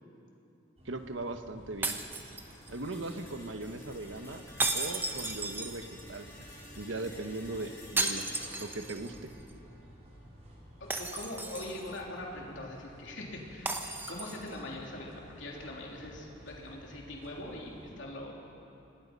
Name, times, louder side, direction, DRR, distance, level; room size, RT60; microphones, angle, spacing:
sound 1, 0.8-17.9, equal, 35° right, 4.2 m, -54 dB
voice 1, 0.8-2.0 2.7-4.4 4.7-6.3 6.7-8.3 8.6-9.3, right 2 dB, 75° right, 7 dB, 1.2 m, -39 dB
sound 2, 1.8-2.9 4.6-6.2 8.0-9.2 9.5-9.6 10.9-12.0 13.7-14.6, right 3 dB, 10° right, 1.0 m, -34 dB
sound 3, 2.6-10.6, left 1 dB, 15° left, 4.7 m, -53 dB
voice 2, 10.8-13.7 14.1-18.4, left 1 dB, 65° left, -2 dB, 3.5 m, -42 dB
26.0 x 19.0 x 5.5 m, 2.8 s
head